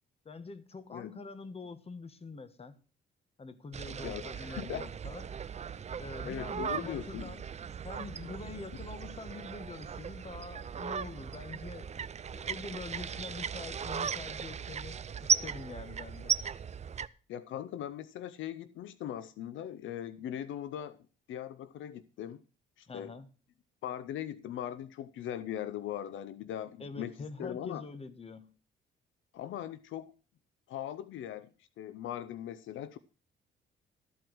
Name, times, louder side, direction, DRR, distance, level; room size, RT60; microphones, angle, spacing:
voice 1, 0.2-2.8 3.4-7.4 7.8-12.1 12.3-16.3 22.9-23.3 26.8-28.5, left 3 dB, 30° left, 1.3 m, -45 dB
sound 1, 3.7-17.1, right 7 dB, 35° right, 0.5 m, -37 dB
voice 2, 4.0-4.8 6.2-7.3 17.3-21.0 21.3-22.4 22.8-23.1 23.8-27.8 29.3-30.1 30.7-31.5 31.8-33.0, left 10 dB, 75° left, 0.7 m, -40 dB
13.5 x 4.7 x 7.8 m
cardioid pair, 90°, 20 cm